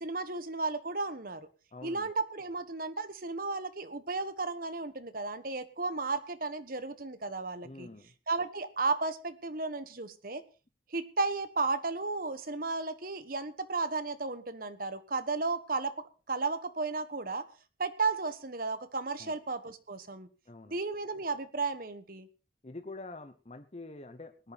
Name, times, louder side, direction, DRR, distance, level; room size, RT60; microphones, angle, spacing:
voice 1, 0.0-1.5 1.8-7.9 8.3-10.4 10.9-15.9 16.3-17.4 17.8-20.3 20.7-22.3, right 3 dB, 50° right, 11 dB, 1.3 m, -34 dB
voice 2, 1.7-2.2 7.6-8.1 19.2-19.4 20.5-20.8 22.6-24.5, left 2 dB, 35° left, 8 dB, 0.9 m, -46 dB
19.0 x 10.5 x 4.2 m, 0.34 s
head